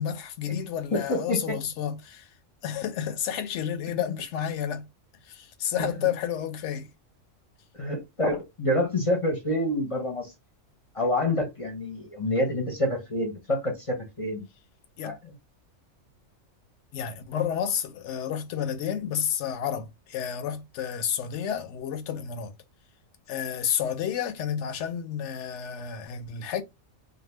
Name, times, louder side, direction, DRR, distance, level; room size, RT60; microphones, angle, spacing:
voice 1, 0.0-2.3 2.6-4.9 5.2-6.9 15.0-15.1 16.9-22.5 23.3-26.6, left 9 dB, 65° left, 0.9 m, -30 dB
voice 2, 0.9-1.5 5.8-5.9 7.8-10.3 10.9-14.4 15.0-15.1, left 1 dB, 35° left, 0.7 m, -27 dB
2.6 x 2.3 x 3.2 m
omnidirectional pair, 1.4 m